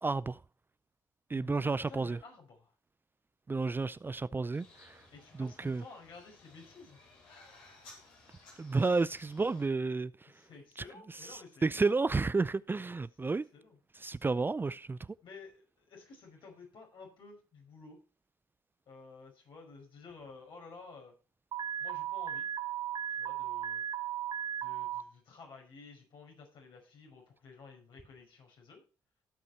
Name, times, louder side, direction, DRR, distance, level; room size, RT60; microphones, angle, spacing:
voice 1, 0.0-0.4 1.3-2.2 3.5-5.0 5.4-5.8 8.6-10.1 11.3-13.5 14.0-15.0, right 3 dB, 25° right, 0.4 m, -31 dB
voice 2, 1.3-2.7 5.1-7.0 10.3-12.0 13.3-13.8 15.2-18.0 18.9-21.1 21.8-22.5 23.1-23.8 24.6-28.8, left 4 dB, 65° left, 5.3 m, -53 dB
sound 1, 4.5-9.7, left 3 dB, 80° left, 4.5 m, -58 dB
Alarm, 21.5-25.0, right 10 dB, 60° right, 1.0 m, -36 dB
16.5 x 5.7 x 4.4 m
supercardioid pair, 55°, 9 cm